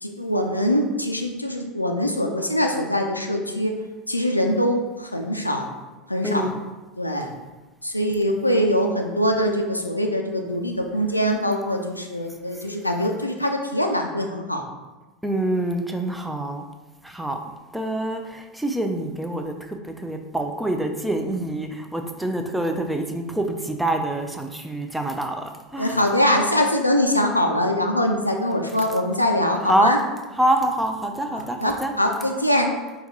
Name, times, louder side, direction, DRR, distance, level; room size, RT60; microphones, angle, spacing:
voice 1, 0.0-3.7 4.1-5.7 6.1-6.5 7.0-7.3 7.8-14.7 25.8-30.0 31.3-32.7, equal, 90° left, 3 dB, 0.3 m, -23 dB
voice 2, 6.2-6.5 15.2-16.6 17.0-17.4 17.7-26.0 29.7-30.0 30.4-31.9, right 1 dB, 5° right, 5 dB, 0.4 m, -25 dB
4.5 x 2.3 x 2.8 m, 1.1 s
figure-of-eight pair, 75°, 0 cm